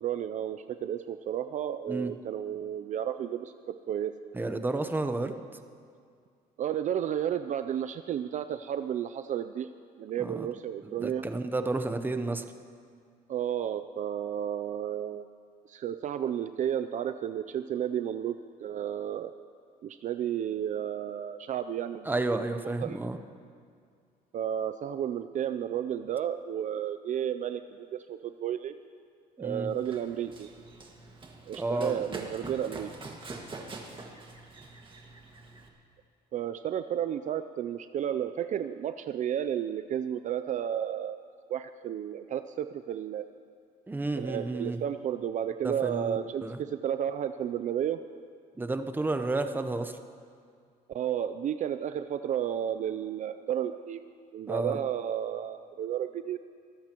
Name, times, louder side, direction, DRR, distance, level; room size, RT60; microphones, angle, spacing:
voice 1, 0.0-4.1 6.6-9.7 10.0-11.2 13.3-15.3 15.7-19.3 19.8-22.1 22.8-23.0 24.3-28.7 29.4-30.5 31.5-32.9 36.3-41.2 41.5-43.3 44.2-48.0 50.9-54.0 54.3-56.4, right 10 dB, 45° right, 10 dB, 0.4 m, -32 dB
voice 2, 4.3-5.4 10.2-10.5 10.8-12.5 22.0-23.2 29.4-29.7 31.5-32.0 43.9-44.8 45.6-46.6 48.6-50.0 54.5-54.8, right 2 dB, 10° right, 8 dB, 0.8 m, -31 dB
Run, 29.7-35.7, right 3 dB, 30° right, 1.8 m, -45 dB
24.0 x 14.0 x 3.0 m, 2.2 s
cardioid pair, 110°, 17 cm